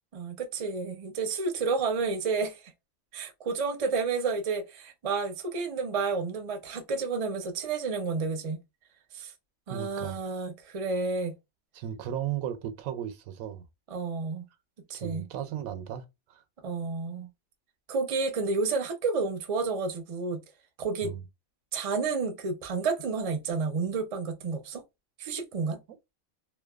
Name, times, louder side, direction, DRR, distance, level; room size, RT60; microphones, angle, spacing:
voice 1, 0.1-2.6 3.1-8.6 9.1-9.3 9.7-11.3 13.9-14.4 14.9-15.3 16.6-17.3 17.9-20.4 20.8-21.1 21.7-24.8 25.2-25.8, right 4 dB, 45° right, 0.4 m, -30 dB
voice 2, 9.7-10.2 11.7-13.7 15.0-16.4 21.0-21.2, right 10 dB, 90° right, 1.0 m, -35 dB
2.8 x 2.2 x 2.3 m
omnidirectional pair, 1.4 m